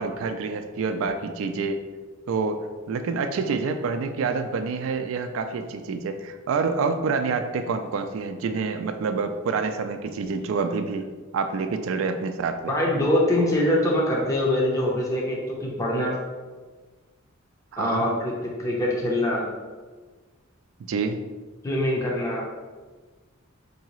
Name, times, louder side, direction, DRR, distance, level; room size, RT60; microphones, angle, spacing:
voice 1, 0.0-1.8 2.3-11.1 11.3-12.7 17.7-18.1 20.9-21.2, right 4 dB, 75° right, 7 dB, 0.3 m, -27 dB
voice 2, 12.7-16.1 17.8-18.3 18.6-19.5 21.6-22.4, left 1 dB, 15° left, -3 dB, 0.6 m, -23 dB
4.7 x 2.7 x 3.0 m, 1.4 s
head